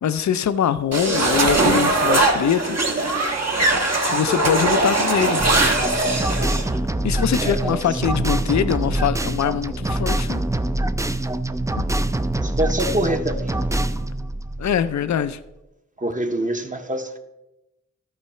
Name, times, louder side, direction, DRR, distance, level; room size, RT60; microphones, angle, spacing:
voice 1, 0.0-2.8 4.0-5.4 7.0-10.4 11.8-11.9 14.6-15.4 16.3-16.5, left 8 dB, 70° left, 0.4 m, -23 dB
sound 1, 0.9-6.7, right 2 dB, 60° right, 1.3 m, -20 dB
sound 2, 5.4-15.3, right 1 dB, 10° right, 0.4 m, -25 dB
voice 2, 7.4-7.8 12.4-13.7 16.0-17.2, right 1 dB, 25° right, 0.8 m, -25 dB
14.0 x 4.7 x 4.3 m
wide cardioid pair, 95°, 29 cm